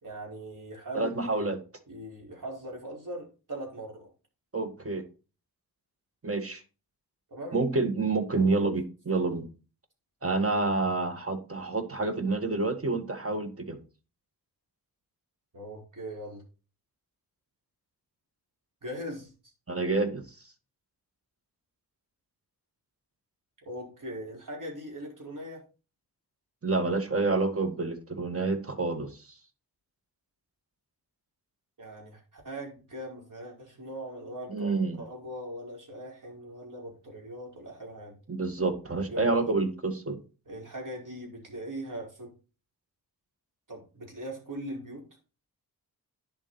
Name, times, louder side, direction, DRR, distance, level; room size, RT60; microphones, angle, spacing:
voice 1, 0.0-1.4 1.9-4.1 7.3-7.6 8.4-8.6 15.5-16.4 18.8-19.3 23.6-25.6 31.8-38.2 39.1-39.5 40.5-42.3 43.7-45.0, right 1 dB, 55° right, 0 dB, 4.9 m, -40 dB
voice 2, 0.9-1.6 4.5-5.0 6.2-6.6 7.5-9.5 10.2-13.8 19.7-20.2 26.6-29.3 34.5-35.0 38.3-40.2, right 3 dB, 35° right, 8 dB, 1.8 m, -28 dB
10.0 x 7.4 x 4.2 m, 0.33 s
wide cardioid pair, 70°, 38 cm